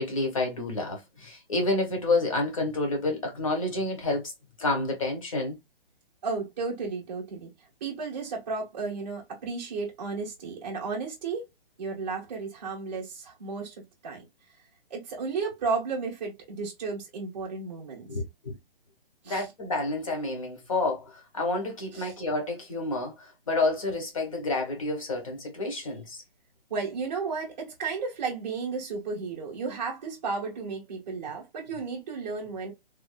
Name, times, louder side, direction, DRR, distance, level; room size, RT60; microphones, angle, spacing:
voice 1, 0.0-4.3 4.6-5.6 18.1-18.6 19.2-26.2, left 2 dB, 35° left, 1.4 m, -29 dB
voice 2, 6.2-7.5 7.8-11.4 11.8-13.8 14.0-14.2 14.9-18.1 19.2-19.5 21.9-22.1 26.7-32.7, right 4 dB, 15° right, 0.9 m, -33 dB
3.4 x 3.0 x 2.3 m
hypercardioid pair, 175°, 30 cm